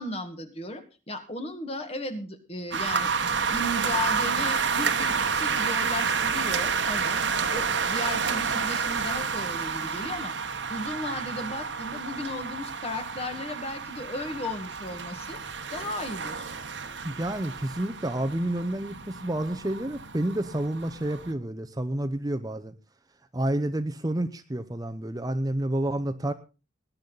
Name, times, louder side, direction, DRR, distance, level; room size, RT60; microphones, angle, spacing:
voice 1, 0.0-7.2 7.5-15.4 15.7-16.5, left 1 dB, 30° left, 8 dB, 1.8 m, -35 dB
sound 1, 2.7-21.3, right 5 dB, 70° right, 1.3 m, -30 dB
voice 2, 17.0-22.7 23.3-26.3, right 1 dB, 20° right, 9 dB, 0.7 m, -29 dB
20.0 x 10.5 x 4.0 m, 0.32 s
head